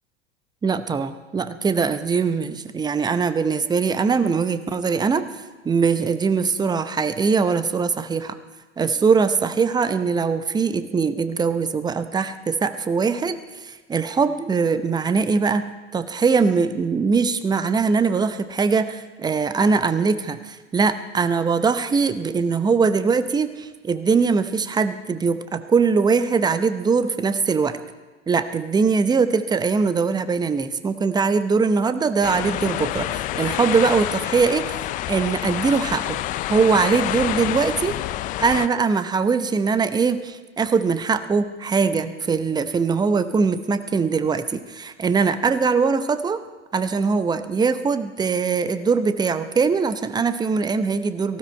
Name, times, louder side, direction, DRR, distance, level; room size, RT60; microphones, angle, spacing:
voice 1, 0.6-5.3 5.6-8.4 8.8-27.8 28.3-36.2 36.5-38.0 38.4-46.4 46.7-51.4, right 5 dB, 10° right, 12 dB, 0.7 m, -21 dB
sound 1, 32.2-38.7, left 14 dB, 25° left, 0.4 m, -28 dB
18.0 x 15.5 x 4.5 m, 1.3 s
figure-of-eight pair, 90°, 36 cm